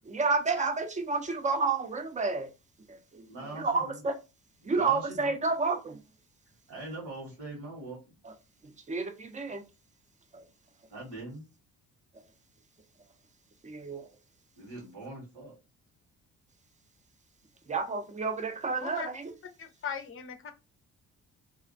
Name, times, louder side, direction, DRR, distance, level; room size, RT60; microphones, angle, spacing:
voice 1, 0.0-2.5 2.9-4.2 4.6-6.0 8.2-8.3 8.9-9.6 10.3-10.4 13.6-14.1 17.7-19.3, right 4 dB, 25° right, 0.5 m, -30 dB
voice 2, 3.2-3.9 4.6-5.3 6.7-8.0 10.9-11.4 14.6-15.5, right 2 dB, 85° right, 1.3 m, -42 dB
voice 3, 19.6-20.5, left 7 dB, 45° left, 0.5 m, -38 dB
2.4 x 2.1 x 2.4 m
cardioid pair, 90°, 30 cm